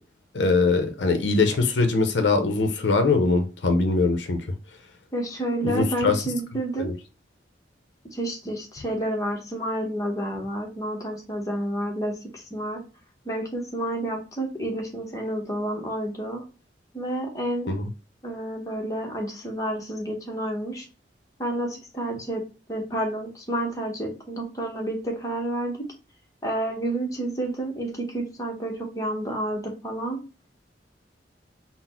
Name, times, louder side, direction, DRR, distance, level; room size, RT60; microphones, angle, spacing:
voice 1, 0.3-4.4 5.6-6.2 6.8-6.9 17.7-17.9, left 3 dB, 90° left, 0.6 m, -22 dB
voice 2, 5.1-6.9 8.1-12.8 13.2-16.4 16.9-17.8 18.2-20.9 21.4-22.4 22.7-25.9 26.4-30.2, right 1 dB, 20° left, 0.9 m, -30 dB
4.0 x 2.1 x 4.2 m
head